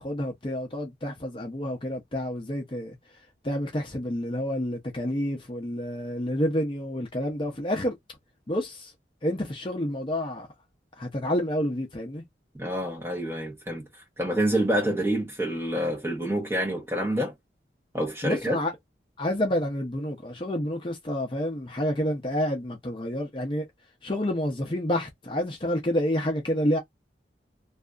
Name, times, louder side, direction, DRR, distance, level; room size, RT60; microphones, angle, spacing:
voice 1, 0.0-3.0 3.4-7.9 8.5-8.9 9.2-10.5 11.0-12.2 18.2-18.7 19.2-23.7 24.0-26.8, equal, 30° left, 0.5 m, -29 dB
voice 2, 12.6-13.8 14.2-17.3 17.9-18.6, right 1 dB, 15° right, 0.9 m, -27 dB
2.6 x 2.4 x 2.3 m
head